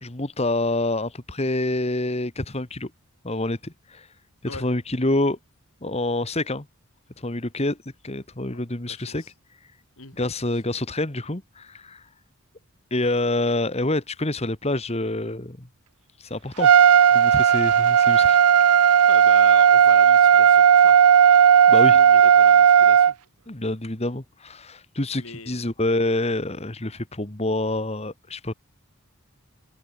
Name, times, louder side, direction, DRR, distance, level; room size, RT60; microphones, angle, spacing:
voice 1, 0.0-2.9 3.2-4.1 4.4-5.4 5.8-6.7 7.2-7.8 8.0-9.2 10.2-12.0 12.9-15.7 16.2-16.7 17.1-18.4 21.7-22.0 23.5-28.5, left 2 dB, 30° left, 1.7 m, -27 dB
voice 2, 8.8-9.3 10.0-10.2 19.0-21.0 21.8-23.2 25.1-25.6, left 3 dB, 65° left, 4.6 m, -39 dB
Trumpet, 16.6-23.1, right 8 dB, 85° right, 0.5 m, -15 dB
open air
head